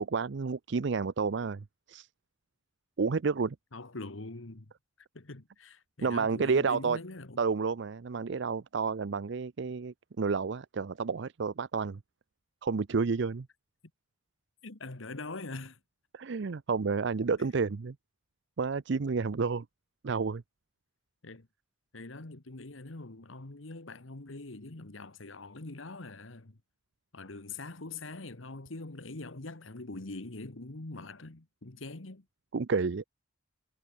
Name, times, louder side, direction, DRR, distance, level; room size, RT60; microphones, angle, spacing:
voice 1, 0.0-2.1 3.0-3.5 6.0-7.0 7.4-12.0 12.6-13.5 16.1-17.9 18.6-19.6 20.0-20.4 32.5-33.0, right 5 dB, 65° right, 0.5 m, -30 dB
voice 2, 3.7-4.6 5.0-7.4 14.6-15.8 21.2-21.5 21.9-26.6 27.1-32.2, left 2 dB, 85° left, 1.7 m, -43 dB
head